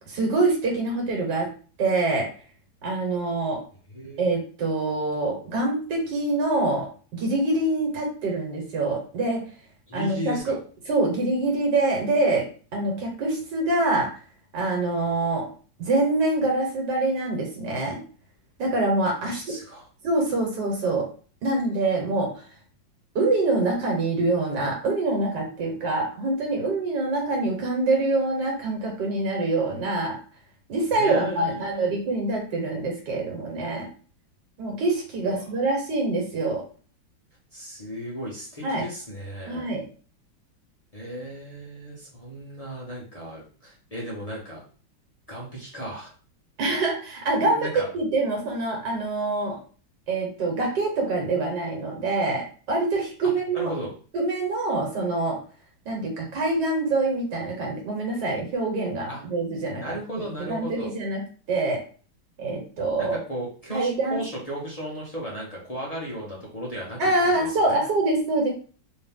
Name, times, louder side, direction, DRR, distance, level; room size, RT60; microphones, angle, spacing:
voice 1, 0.1-1.5 1.8-2.3 2.8-3.6 4.2-9.4 9.9-10.6 10.9-14.1 14.5-15.5 15.8-18.0 18.6-19.6 20.0-21.1 21.4-22.4 23.2-30.2 30.7-33.9 34.6-36.6 38.6-38.8 39.5-39.8 46.6-49.6 50.1-53.7 54.1-55.4 55.9-60.0 60.5-61.2 61.5-61.8 62.4-63.2 63.7-64.2 67.0-68.5, right 2 dB, 65° right, 0 dB, 1.9 m, -25 dB
voice 2, 3.9-4.2 9.9-10.6 19.1-19.8 30.9-31.9 35.2-35.5 37.5-39.7 40.9-44.6 45.3-46.1 47.4-47.9 53.5-53.9 59.1-59.2 59.8-60.9 63.0-67.0 67.4-67.8, equal, 30° left, -5 dB, 0.7 m, -35 dB
3.7 x 2.7 x 3.5 m, 0.39 s
omnidirectional pair, 2.1 m